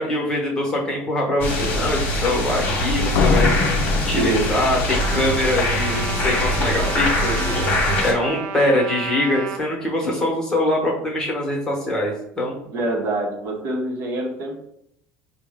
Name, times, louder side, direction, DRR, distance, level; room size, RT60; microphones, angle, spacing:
voice 1, 0.0-3.5 4.0-7.4 8.0-12.7, left 1 dB, 15° left, -2 dB, 1.0 m, -23 dB
sound 1, 1.4-8.1, left 1 dB, 35° left, 1.0 m, -23 dB
Slam, 3.1-5.1, left 4 dB, 60° left, 0.4 m, -22 dB
voice 2, 4.2-4.5 12.7-14.7, right 2 dB, 50° right, 0 dB, 0.8 m, -25 dB
Trumpet, 4.9-9.6, right 7 dB, 70° right, 0.4 m, -31 dB
4.3 x 2.1 x 3.5 m, 0.74 s
cardioid pair, 145°, 5 cm